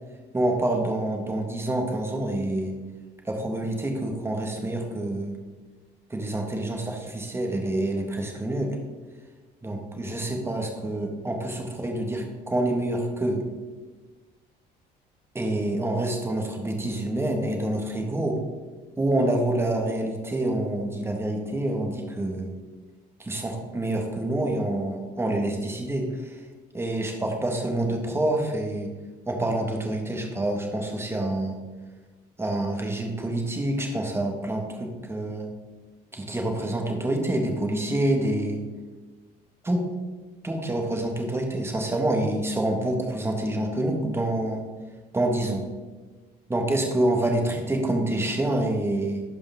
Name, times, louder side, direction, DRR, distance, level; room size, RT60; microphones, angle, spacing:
voice 1, 0.3-2.8 3.2-5.3 6.1-8.8 9.6-13.4 15.3-18.4 19.0-22.5 23.2-26.3 26.7-28.9 29.3-31.5 32.4-35.5 36.1-38.6 39.6-39.8 40.4-44.6 45.1-45.6 46.5-49.2, right 1 dB, 15° right, 2 dB, 1.5 m, -27 dB
11.0 x 5.2 x 3.5 m, 1.3 s
cardioid pair, 110°, 17 cm